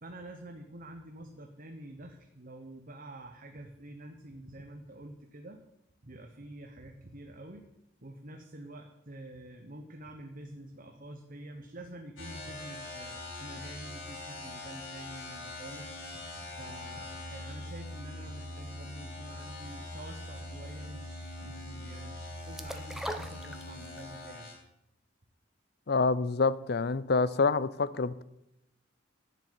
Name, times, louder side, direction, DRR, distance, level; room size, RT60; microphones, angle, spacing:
voice 1, 0.0-5.6 6.0-7.7 8.0-16.2 16.6-24.5, right 1 dB, 45° right, 4 dB, 1.1 m, -47 dB
sound 1, 12.2-24.6, left 2 dB, 80° left, 3.5 m, -43 dB
sound 2, 22.6-24.1 24.5-24.6, equal, ahead, 0.8 m, -39 dB
voice 2, 25.9-28.2, left 4 dB, 55° left, 17 dB, 0.6 m, -27 dB
11.5 x 7.5 x 9.6 m, 0.87 s
head